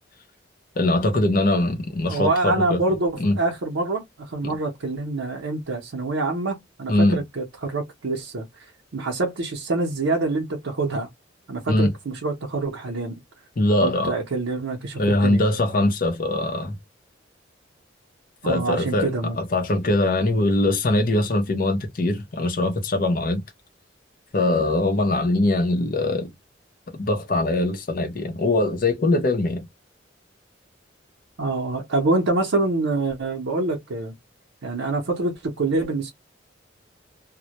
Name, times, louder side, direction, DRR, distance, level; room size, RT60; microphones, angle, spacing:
voice 1, 0.8-2.8 3.2-3.3 4.4-4.5 6.9-7.2 11.7-11.9 13.6-14.1 15.0-16.8 18.4-19.1 19.4-23.4 24.3-26.3 26.9-29.7, left 2 dB, 45° left, 0.6 m, -22 dB
voice 2, 2.1-11.1 11.5-13.2 13.8-15.4 18.4-19.4 31.4-34.1 34.6-36.1, right 2 dB, 85° right, 0.6 m, -26 dB
2.1 x 2.1 x 2.8 m
head